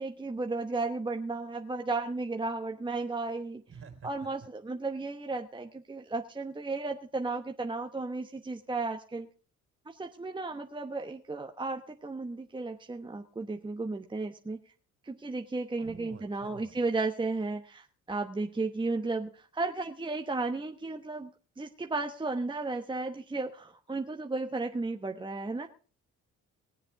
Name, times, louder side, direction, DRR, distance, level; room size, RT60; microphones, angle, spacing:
voice 1, 0.0-3.6 4.0-9.3 9.9-14.6 15.0-25.7, right 3 dB, 15° right, 4 dB, 1.0 m, -34 dB
voice 2, 3.7-4.3 15.8-16.8, right 6 dB, 50° right, 4 dB, 3.5 m, -49 dB
20.0 x 7.5 x 4.6 m, 0.39 s
cardioid pair, 90°, 30 cm